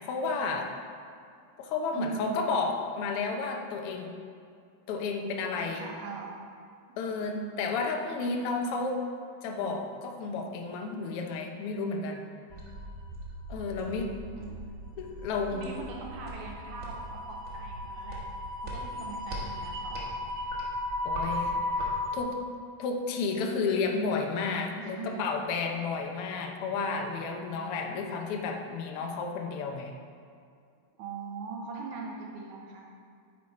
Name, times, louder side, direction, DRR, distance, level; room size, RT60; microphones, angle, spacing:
voice 1, 0.0-0.7 1.6-4.1 4.9-5.9 7.0-9.0 9.4-12.2 13.5-14.1 15.0-15.7 21.0-22.4 22.8-29.9, left 4 dB, 70° left, 2 dB, 1.4 m, -32 dB
voice 2, 1.9-2.5 5.6-6.4 7.2-7.8 14.3-14.7 15.5-18.2 18.6-20.2 24.7-25.2 31.0-32.9, right 5 dB, 75° right, -1 dB, 2.1 m, -41 dB
sound 1, 12.5-22.2, left 1 dB, 45° right, 1.1 m, -36 dB
8.8 x 7.8 x 4.2 m, 2.3 s
omnidirectional pair, 3.5 m